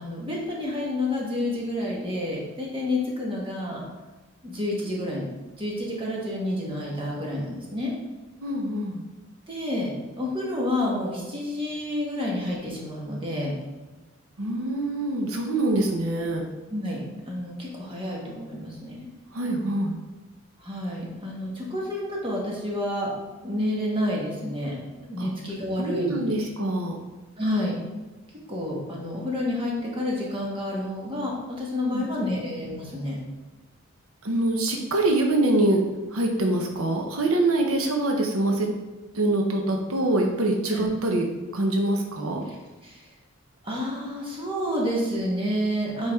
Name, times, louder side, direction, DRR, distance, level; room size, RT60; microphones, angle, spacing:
voice 1, 0.0-3.8 4.4-5.3 5.6-7.9 9.5-9.9 10.2-13.5 16.7-17.0 17.3-18.9 20.6-23.1 23.4-24.8 25.0-26.2 27.4-27.8 28.5-33.2 40.7-40.9 42.5-42.6 42.8-43.1 43.6-46.1, left 1 dB, 25° right, -3 dB, 1.5 m, -29 dB
voice 2, 8.4-9.0 14.4-16.4 19.3-20.0 25.2-25.3 25.8-27.0 31.8-32.3 34.2-35.8 36.1-38.7 39.1-41.2 41.5-42.4, right 1 dB, 85° right, 2 dB, 0.9 m, -24 dB
7.4 x 4.7 x 3.6 m, 1.2 s
head